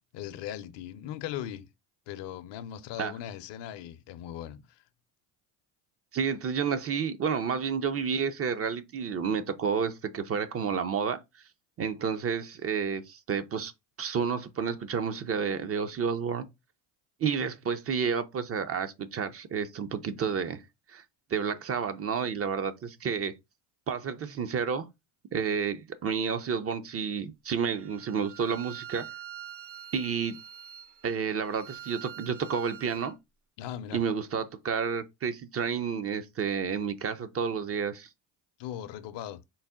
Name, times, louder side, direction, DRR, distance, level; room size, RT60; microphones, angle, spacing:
voice 1, 0.1-1.7 2.1-4.8 33.6-34.0 38.6-39.4, left 11 dB, 55° left, 0.6 m, -39 dB
voice 2, 6.1-11.2 11.8-13.7 14.0-16.4 17.2-20.6 20.9-21.0 21.3-23.3 23.9-24.9 25.3-29.1 29.9-30.4 31.0-33.1 33.9-38.1, right 6 dB, 30° right, 0.4 m, -30 dB
Bowed string instrument, 27.7-33.1, right 10 dB, 55° right, 0.8 m, -46 dB
4.0 x 2.1 x 3.5 m
supercardioid pair, 80°, 50 cm